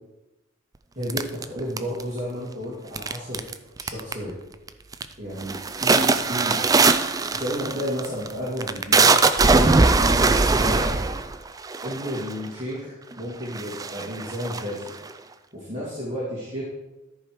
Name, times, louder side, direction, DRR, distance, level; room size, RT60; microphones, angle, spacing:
voice 1, 0.9-3.4 3.8-4.3 5.2-6.6 7.3-9.1 10.0-11.0 11.8-14.9 15.5-16.6, equal, 35° right, -8 dB, 2.3 m, -32 dB
sound 1, 1.1-2.2 3.0-3.5 3.8-4.3 4.7-5.1 5.4-12.5 13.1-13.2 13.5-15.1, right 3 dB, 15° right, 0.3 m, -20 dB
13.5 x 4.9 x 4.7 m, 1.0 s
head